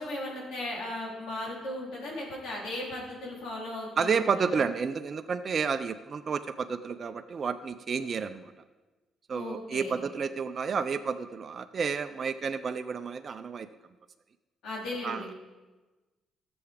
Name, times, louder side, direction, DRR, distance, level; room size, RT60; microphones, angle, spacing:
voice 1, 0.0-4.6 9.3-10.0 14.6-15.3, left 1 dB, 80° left, -4 dB, 3.6 m, -37 dB
voice 2, 4.0-8.5 9.3-13.7 15.0-15.3, right 6 dB, 45° right, 8 dB, 0.5 m, -31 dB
13.0 x 7.1 x 5.1 m, 1.2 s
cardioid pair, 90°, 0 cm